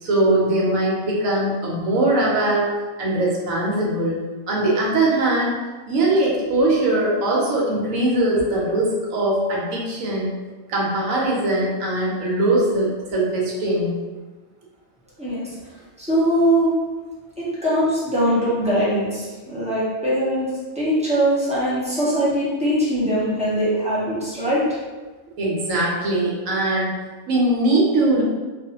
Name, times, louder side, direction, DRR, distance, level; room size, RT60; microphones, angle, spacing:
voice 1, 0.0-2.7 3.0-4.2 4.5-5.5 5.9-10.3 10.7-14.0 25.4-26.9 27.3-28.2, right 1 dB, 75° right, -3 dB, 1.1 m, -21 dB
voice 2, 15.2-15.5 16.0-16.7 17.4-20.5 20.7-24.6, equal, 5° right, -10 dB, 0.6 m, -21 dB
2.6 x 2.4 x 2.8 m, 1.3 s
omnidirectional pair, 1.4 m